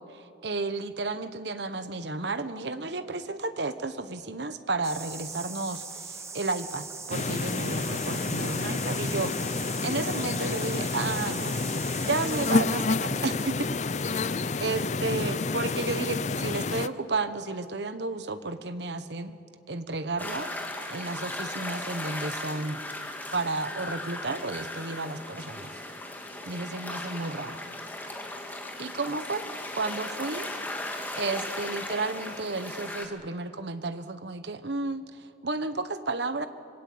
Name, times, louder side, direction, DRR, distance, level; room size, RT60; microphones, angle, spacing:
voice 1, 0.1-11.6 12.1-19.3 19.7-20.5 20.9-22.8 23.3-25.7 26.5-27.6 28.8-29.5 29.7-30.5 31.2-36.5, right 3 dB, 65° right, 11 dB, 1.2 m, -32 dB
sound 1, 4.8-12.5, right 4 dB, 15° right, 1.1 m, -41 dB
sound 2, 7.1-16.9, left 3 dB, 40° left, 0.5 m, -29 dB
sound 3, 20.2-33.1, left 1 dB, 10° left, 2.1 m, -37 dB
25.5 x 21.0 x 8.7 m, 2.5 s
head